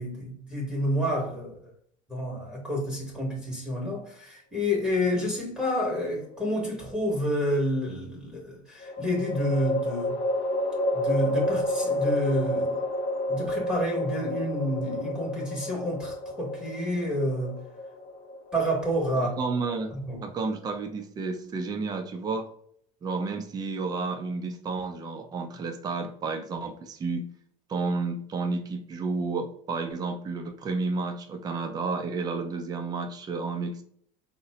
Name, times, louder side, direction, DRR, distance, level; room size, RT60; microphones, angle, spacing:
voice 1, 0.0-1.7 2.1-10.2 10.9-12.8 13.3-17.6 18.5-19.4 19.9-20.3, equal, 5° right, 0.8 m, -29 dB
sound 1, 5.7-6.5 8.8-20.1, left 1 dB, 80° left, 0.8 m, -30 dB
voice 2, 19.4-19.9 20.2-22.5 23.0-27.3 27.7-33.8, right 4 dB, 25° right, 0.4 m, -31 dB
3.7 x 2.1 x 2.7 m
cardioid pair, 125°, 17 cm